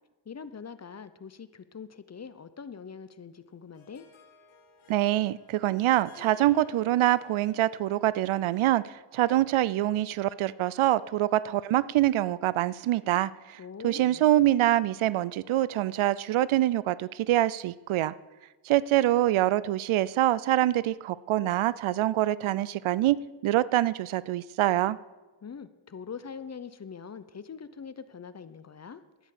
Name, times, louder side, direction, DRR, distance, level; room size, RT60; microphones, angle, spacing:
voice 1, 0.3-4.1 13.6-14.3 25.4-29.0, left 6 dB, 35° left, 13 dB, 0.7 m, -43 dB
Harp, 3.4-8.7, left 4 dB, 85° left, 1.6 m, -56 dB
voice 2, 4.9-18.1 18.6-23.2 23.4-25.0, right 14 dB, 90° right, 19 dB, 0.6 m, -25 dB
12.0 x 10.0 x 6.6 m, 1.2 s
wide cardioid pair, 105°, 47 cm